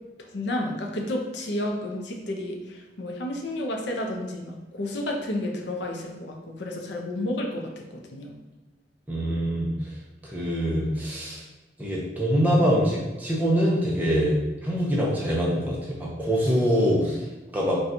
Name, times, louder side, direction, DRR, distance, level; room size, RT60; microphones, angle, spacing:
voice 1, 0.3-7.8 8.1-8.3, left 1 dB, 65° left, 1 dB, 0.5 m, -31 dB
voice 2, 9.1-9.9 10.2-11.4 11.8-17.3 17.5-17.8, equal, 10° right, -5 dB, 0.5 m, -24 dB
4.1 x 2.3 x 2.6 m, 1.1 s
head